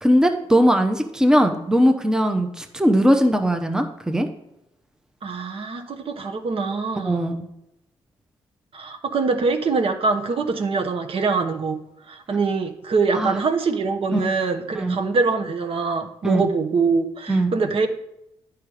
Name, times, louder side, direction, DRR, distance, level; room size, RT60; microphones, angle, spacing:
voice 1, 0.0-4.3 7.0-7.4 13.1-13.3 14.1-14.2 14.7-15.0 16.2-16.4 17.3-17.5, equal, 5° right, 6 dB, 0.7 m, -19 dB
voice 2, 5.2-7.3 8.7-11.8 12.1-17.9, right 4 dB, 55° right, 7 dB, 1.0 m, -24 dB
9.6 x 4.8 x 4.9 m, 0.84 s
cardioid pair, 85°, 11 cm